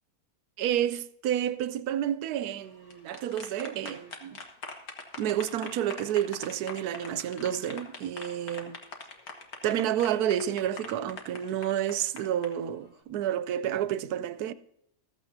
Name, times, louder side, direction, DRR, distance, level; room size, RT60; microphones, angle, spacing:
voice 1, 0.6-4.4 5.2-8.8 9.6-14.5, right 10 dB, 85° right, 1.1 m, -30 dB
sound 1, 2.7-12.5, left 4 dB, 75° left, 1.9 m, -42 dB
14.5 x 14.5 x 2.7 m
omnidirectional pair, 1.6 m